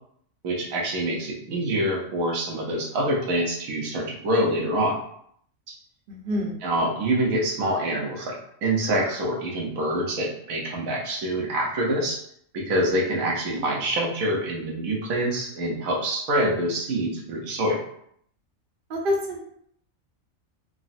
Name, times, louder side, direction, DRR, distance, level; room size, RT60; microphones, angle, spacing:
voice 1, 0.4-5.0 6.6-8.3 8.6-12.2 12.5-17.8, right 1 dB, 90° right, -1 dB, 1.2 m, -26 dB
voice 2, 6.1-6.5 13.5-13.6 18.9-19.4, left 1 dB, 55° right, 0 dB, 0.7 m, -27 dB
3.6 x 2.0 x 2.5 m, 0.67 s
omnidirectional pair, 1.4 m